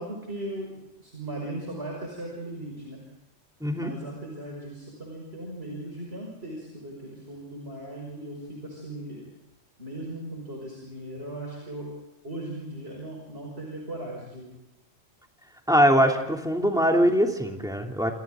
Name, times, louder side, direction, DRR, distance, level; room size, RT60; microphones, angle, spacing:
voice 1, 0.0-3.0 3.7-9.2 9.8-11.9 12.2-14.5, right 1 dB, 55° right, -1 dB, 6.0 m, -38 dB
voice 2, 15.7-18.1, equal, 5° right, 1 dB, 3.0 m, -22 dB
28.5 x 27.5 x 3.8 m, 0.95 s
omnidirectional pair, 1.3 m